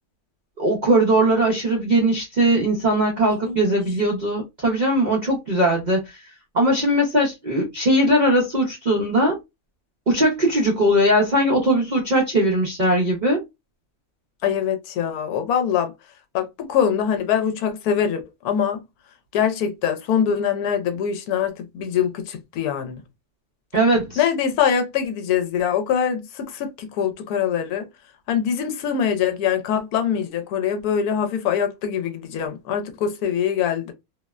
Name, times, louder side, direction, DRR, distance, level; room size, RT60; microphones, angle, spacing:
voice 1, 0.6-6.2 6.5-9.4 10.1-13.4 23.7-24.2, right 1 dB, 50° right, 0.5 m, -20 dB
voice 2, 3.4-3.8 14.4-15.9 16.3-18.8 19.3-23.0 24.2-27.9 28.3-33.9, left 8 dB, 80° left, 1.1 m, -23 dB
2.7 x 2.0 x 2.2 m
omnidirectional pair, 1.6 m